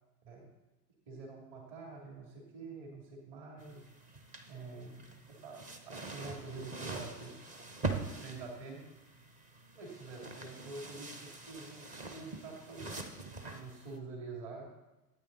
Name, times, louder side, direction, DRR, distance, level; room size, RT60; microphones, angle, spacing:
voice 1, 1.1-3.8 4.5-7.4 8.2-8.8 9.7-13.1 13.5-14.7, right 3 dB, 35° right, -1 dB, 2.8 m, -47 dB
sound 1, 3.6-14.0, right 3 dB, 15° right, 0.7 m, -44 dB
13.5 x 8.9 x 4.0 m, 1.0 s
figure-of-eight pair, 100°, 48 cm